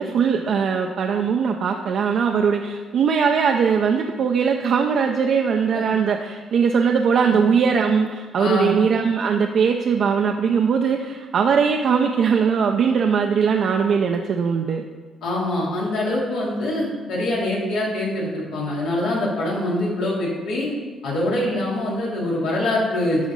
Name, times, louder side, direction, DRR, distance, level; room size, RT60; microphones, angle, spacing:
voice 1, 0.0-14.8, right 6 dB, 65° right, 3 dB, 0.5 m, -20 dB
voice 2, 8.4-8.7 15.2-20.7 21.0-23.3, left 1 dB, 85° left, -5 dB, 2.8 m, -24 dB
11.5 x 3.9 x 5.3 m, 1.4 s
cardioid pair, 90°, 0 cm